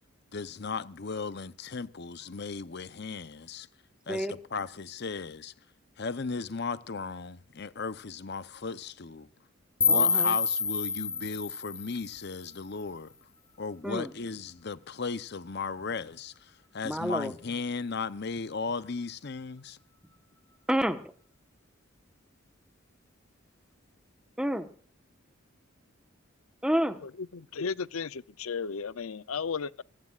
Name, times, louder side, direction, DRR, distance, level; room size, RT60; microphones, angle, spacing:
voice 1, 0.3-3.7 4.1-5.5 6.0-9.3 9.8-13.1 13.6-19.8, left 4 dB, 50° left, 0.7 m, -36 dB
sound 1, 9.8-12.8, left 5 dB, 15° left, 1.0 m, -28 dB
voice 2, 9.9-10.3 13.8-14.1 16.8-17.3 20.7-21.0 24.4-24.7 26.6-27.0, equal, 5° right, 1.2 m, -29 dB
voice 3, 27.0-29.8, left 5 dB, 85° left, 0.6 m, -35 dB
24.5 x 17.0 x 2.5 m
head